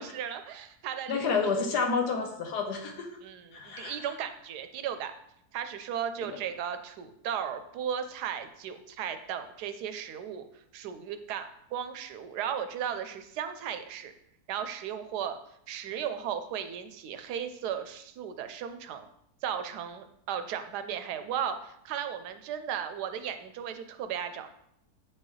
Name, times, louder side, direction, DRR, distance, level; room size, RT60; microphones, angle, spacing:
voice 1, 0.0-1.3 3.2-5.1 5.5-10.4 10.7-14.1 14.5-15.4 15.7-19.1 19.4-24.6, right 8 dB, 85° right, 9 dB, 1.2 m, -36 dB
voice 2, 1.1-3.1 3.5-4.0 6.3-6.4, left 5 dB, 85° left, 3 dB, 1.5 m, -29 dB
7.7 x 4.6 x 3.1 m, 0.75 s
omnidirectional pair, 1.7 m